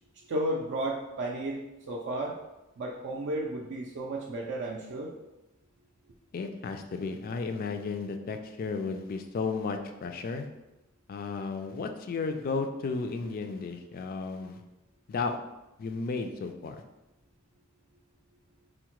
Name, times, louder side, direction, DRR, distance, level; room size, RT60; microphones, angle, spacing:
voice 1, 0.3-1.6 1.9-2.4 2.8-5.1, right 1 dB, 55° right, -1 dB, 0.4 m, -33 dB
voice 2, 6.3-10.5 11.1-14.6 15.1-15.4 15.8-16.8, left 4 dB, 45° left, 6 dB, 0.3 m, -33 dB
4.6 x 2.1 x 3.0 m, 0.99 s
head